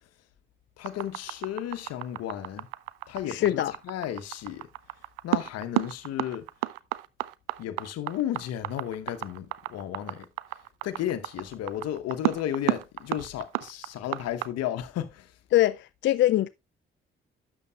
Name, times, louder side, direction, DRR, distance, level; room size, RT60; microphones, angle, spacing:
voice 1, 0.8-2.7 3.1-4.7 5.2-6.5 7.6-10.3 10.8-15.3, left 11 dB, 60° left, 1.0 m, -33 dB
sound 1, 0.8-14.5, right 20 dB, 75° right, 0.5 m, -31 dB
voice 2, 3.3-3.7 15.5-16.5, left 14 dB, 40° left, 0.4 m, -23 dB
12.0 x 7.7 x 2.3 m
figure-of-eight pair, 40°, 29 cm